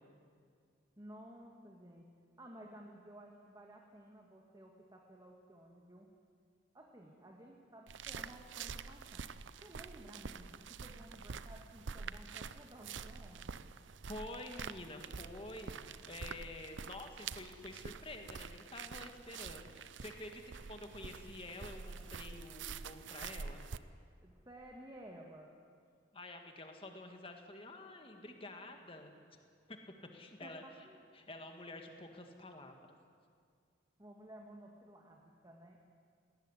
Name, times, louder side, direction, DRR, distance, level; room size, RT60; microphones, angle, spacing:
voice 1, 1.0-6.1 6.7-9.3 9.6-13.7 24.2-25.5 30.4-31.0 34.0-35.8, right 1 dB, 20° right, 0 dB, 1.8 m, -55 dB
sound 1, 7.9-23.8, right 5 dB, 75° right, 0.7 m, -47 dB
voice 2, 14.1-23.6 26.1-29.4 29.7-29.8 30.1-30.6 31.1-32.8, left 2 dB, 30° left, 4 dB, 2.0 m, -49 dB
19.5 x 17.5 x 9.9 m, 2.2 s
head